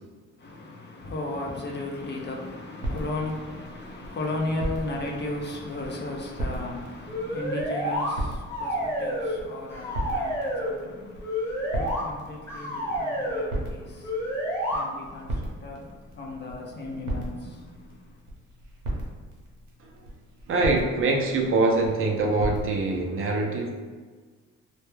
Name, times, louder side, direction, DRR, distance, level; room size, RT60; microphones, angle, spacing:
voice 1, 0.4-18.2, left 2 dB, 35° left, 0.5 m, -35 dB
sound 1, 2.8-22.7, right 1 dB, 80° right, 0.7 m, -37 dB
sound 2, 7.1-8.1 8.5-9.4 9.7-10.7 11.2-12.0 12.5-13.5 14.0-14.8, equal, 10° left, 0.9 m, -29 dB
voice 2, 20.5-23.7, right 3 dB, 45° right, 0.5 m, -24 dB
2.2 x 2.2 x 3.1 m
cardioid pair, 90°, 30 cm